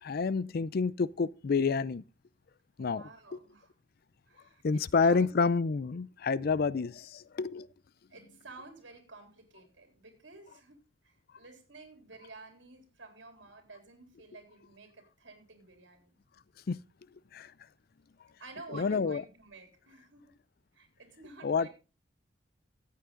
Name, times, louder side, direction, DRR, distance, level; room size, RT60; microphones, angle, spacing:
voice 1, 0.0-2.0 2.8-3.1 4.6-7.7 16.7-16.8 17.3-17.5 18.7-19.2 21.4-21.7, left 4 dB, 55° left, 0.4 m, -29 dB
voice 2, 2.8-3.7 4.3-5.3 8.1-10.8 11.0-16.2 18.4-20.2 20.7-21.7, right 3 dB, 75° right, 3.7 m, -51 dB
14.0 x 8.4 x 3.8 m
head